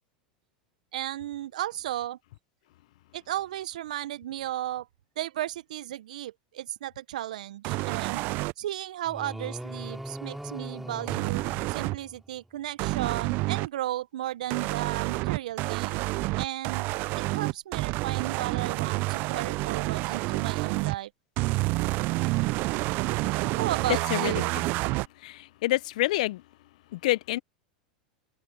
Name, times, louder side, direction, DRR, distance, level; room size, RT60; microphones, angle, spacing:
voice 1, 0.9-2.2 3.1-4.9 5.2-8.2 8.6-11.4 11.7-16.0 16.4-16.9 17.3-21.1 23.6-24.5, right 13 dB, 70° right, 1.1 m, -34 dB
sound 1, 7.6-8.5 11.1-12.0 12.8-13.7 14.5-21.0 21.4-25.1, right 23 dB, 50° right, 0.5 m, -28 dB
sound 2, 9.0-12.4, right 1 dB, 5° right, 4.1 m, -40 dB
voice 2, 24.1-24.6 25.2-26.4 26.9-27.4, left 17 dB, 65° left, 1.0 m, -28 dB
open air
hypercardioid pair, 90°, 4 cm